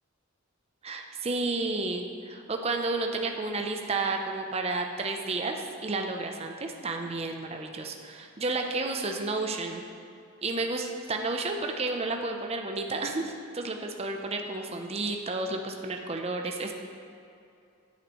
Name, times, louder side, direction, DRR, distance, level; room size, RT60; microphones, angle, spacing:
voice 1, 0.8-9.8 10.4-16.7, right 3 dB, 30° right, 3 dB, 0.6 m, -31 dB
9.7 x 7.9 x 3.1 m, 2.5 s
head